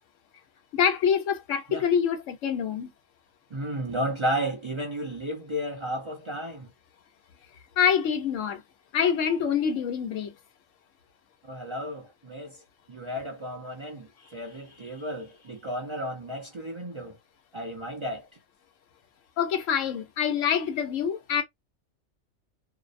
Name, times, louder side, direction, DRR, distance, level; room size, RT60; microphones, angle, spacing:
voice 1, 0.7-2.9 7.8-8.6 8.9-10.3 19.4-21.4, left 7 dB, 85° left, 1.1 m, -25 dB
voice 2, 3.5-6.7 11.4-12.6 12.9-17.2 17.5-18.3, equal, 40° right, 0.4 m, -33 dB
2.6 x 2.0 x 2.5 m
omnidirectional pair, 1.3 m